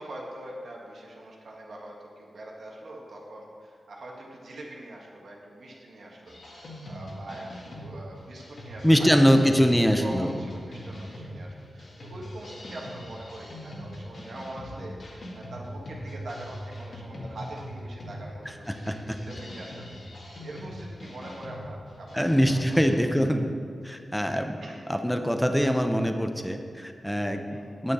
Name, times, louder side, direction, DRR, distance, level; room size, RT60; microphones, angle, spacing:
voice 1, 0.0-9.6 10.0-18.9 19.2-22.9 23.3-23.4 23.9-24.8 27.5-27.8, right 1 dB, 70° right, -2 dB, 1.6 m, -43 dB
sound 1, 6.3-22.9, equal, 50° left, 1.7 m, -41 dB
voice 2, 8.8-10.3 18.7-19.2 22.1-23.4 23.8-24.6 24.9-27.4 27.8-27.9, equal, ahead, 6 dB, 0.6 m, -23 dB
9.2 x 9.0 x 4.2 m, 2.2 s
wide cardioid pair, 175°, 0 cm